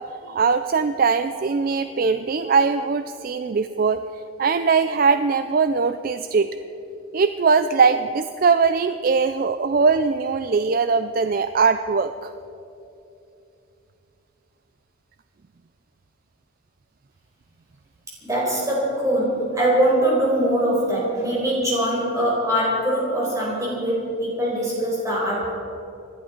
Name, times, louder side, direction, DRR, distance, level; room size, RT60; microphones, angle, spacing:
voice 1, 0.0-6.5 7.1-12.3, right 5 dB, 45° right, 10 dB, 0.4 m, -21 dB
voice 2, 18.2-25.5, right 1 dB, 15° right, -4 dB, 4.7 m, -22 dB
27.0 x 11.0 x 4.5 m, 2.8 s
head